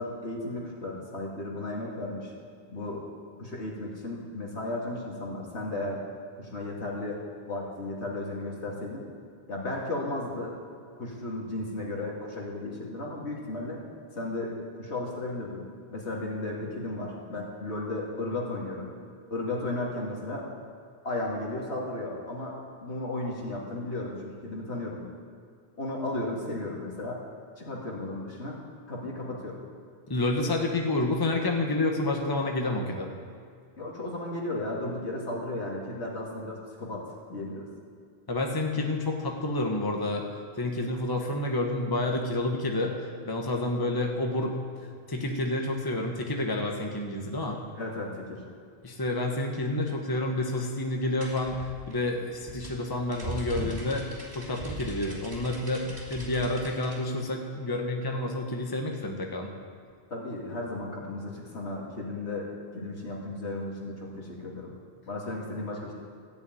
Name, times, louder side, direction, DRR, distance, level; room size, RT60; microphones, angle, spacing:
voice 1, 0.0-2.3 2.7-3.0 3.4-6.0 6.4-9.1 9.5-10.5 11.0-13.8 14.1-18.9 19.3-20.5 21.0-22.6 22.8-25.0 25.8-27.2 27.6-28.6 28.9-29.6 33.8-37.0 37.3-37.7 47.7-48.4 60.1-64.7 65.1-65.9, left 2 dB, 80° left, -3 dB, 2.6 m, -34 dB
voice 2, 30.1-33.1 38.3-40.2 40.6-42.9 43.2-44.6 45.1-47.6 48.8-54.0 54.3-59.5, left 2 dB, 20° left, 2 dB, 1.2 m, -29 dB
sound 1, 51.2-57.0, right 1 dB, 55° right, 3.7 m, -39 dB
14.0 x 6.9 x 9.2 m, 2.2 s
omnidirectional pair, 1.1 m